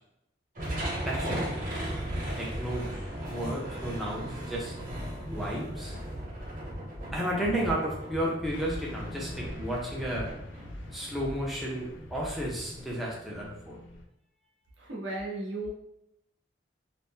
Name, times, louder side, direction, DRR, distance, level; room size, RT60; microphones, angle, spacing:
sound 1, 0.6-13.0, equal, 45° right, 1.0 m, -37 dB
voice 1, 1.0-1.5 2.4-2.9 3.3-4.7 5.2-6.0 7.1-10.3 10.9-13.8, right 1 dB, ahead, -5 dB, 0.4 m, -33 dB
Car passing by / Truck, 8.5-14.1, left 2 dB, 75° left, 0.3 m, -46 dB
voice 2, 14.8-15.7, right 2 dB, 75° right, -2 dB, 0.8 m, -35 dB
2.6 x 2.0 x 3.5 m, 0.82 s
head